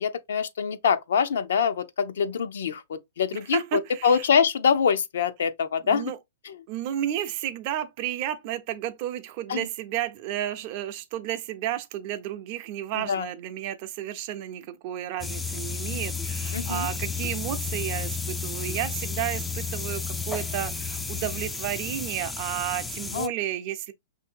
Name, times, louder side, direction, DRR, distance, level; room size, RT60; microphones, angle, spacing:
voice 1, 0.0-6.0 6.4-6.6 9.5-9.7 12.9-13.3 16.5-16.9 23.1-23.3, left 6 dB, 75° left, 0.5 m, -25 dB
voice 2, 3.5-4.3 5.8-6.2 6.7-23.9, right 12 dB, 45° right, 0.6 m, -32 dB
sound 1, 15.2-23.3, left 5 dB, 10° left, 0.3 m, -32 dB
5.6 x 2.6 x 2.5 m
hypercardioid pair, 125°, 0 cm